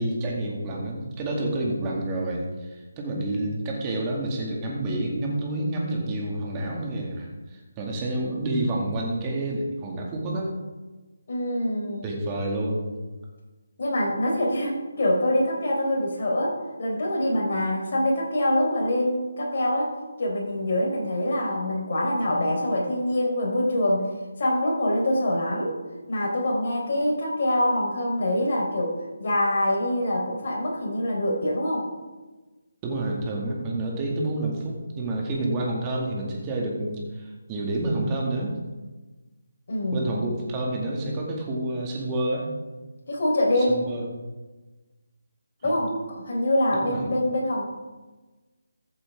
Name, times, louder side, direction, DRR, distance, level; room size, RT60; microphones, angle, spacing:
voice 1, 0.0-10.5 12.0-12.9 32.8-38.5 39.9-42.5 43.6-44.1 45.6-45.7 46.7-47.1, right 1 dB, 20° right, -1 dB, 2.1 m, -29 dB
voice 2, 11.3-12.1 13.8-19.9 20.2-24.1 24.4-25.8 26.1-31.9 39.7-40.3 43.1-43.8 45.6-47.6, left 1 dB, 50° left, -2 dB, 3.9 m, -25 dB
14.0 x 7.9 x 3.6 m, 1.2 s
figure-of-eight pair, 155°, 0 cm